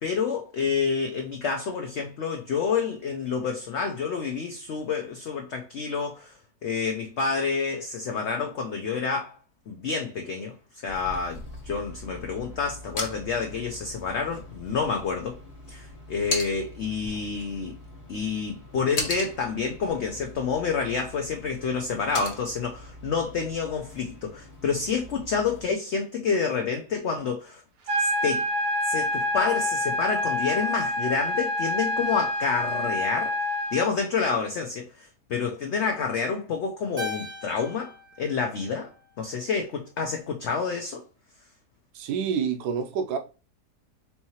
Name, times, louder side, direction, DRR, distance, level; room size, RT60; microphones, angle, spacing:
voice 1, 0.0-6.3 6.6-9.3 9.7-10.5 10.8-15.4 15.7-17.8 18.1-27.6 28.0-28.5 28.9-33.4 33.7-34.9 35.3-37.9 38.2-38.9 39.2-41.0, left 5 dB, 65° left, 0.7 m, -28 dB
sound 1, 10.9-25.6, left 2 dB, 45° left, 1.4 m, -39 dB
sound 2, 27.9-33.9, left 1 dB, 90° right, 1.5 m, -27 dB
Keyboard (musical), 37.0-39.5, left 2 dB, 30° right, 0.8 m, -40 dB
voice 2, 41.9-43.2, right 7 dB, 75° right, 1.1 m, -27 dB
4.6 x 2.9 x 2.8 m
omnidirectional pair, 1.8 m